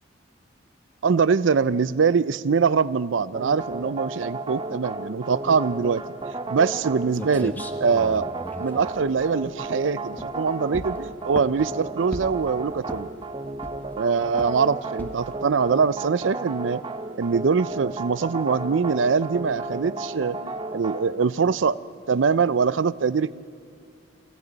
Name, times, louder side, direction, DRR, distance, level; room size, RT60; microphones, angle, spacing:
voice 1, 1.0-6.0 6.5-8.3 8.6-13.1 14.0-16.8 17.2-21.8 22.1-23.3, right 5 dB, 85° right, 16 dB, 0.5 m, -23 dB
sound 1, 3.3-21.3, right 2 dB, 25° right, 0.8 m, -34 dB
sound 2, 6.8-6.9 7.1-9.7 10.1-10.4 10.7-11.7 12.1-12.5 12.8-13.3 13.6-14.0 14.4-14.6 15.0-15.3, equal, 10° left, 1.0 m, -37 dB
29.0 x 28.0 x 4.0 m, 2.4 s
head